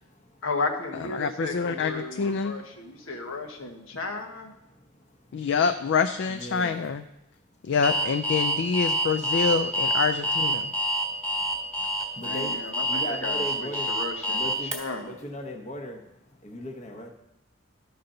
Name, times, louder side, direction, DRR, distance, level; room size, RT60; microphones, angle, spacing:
voice 1, 0.4-4.6 12.2-15.1, left 3 dB, 90° left, 3 dB, 1.2 m, -34 dB
voice 2, 1.1-2.5 5.3-7.0 7.6-10.7, left 5 dB, 60° left, 10 dB, 0.4 m, -26 dB
voice 3, 6.3-6.9 12.2-14.0 14.3-16.1 16.3-17.1, left 1 dB, 35° left, 4 dB, 1.0 m, -38 dB
Alarm, 7.8-14.8, equal, 5° left, 1.4 m, -26 dB
13.0 x 5.5 x 3.9 m, 0.87 s
head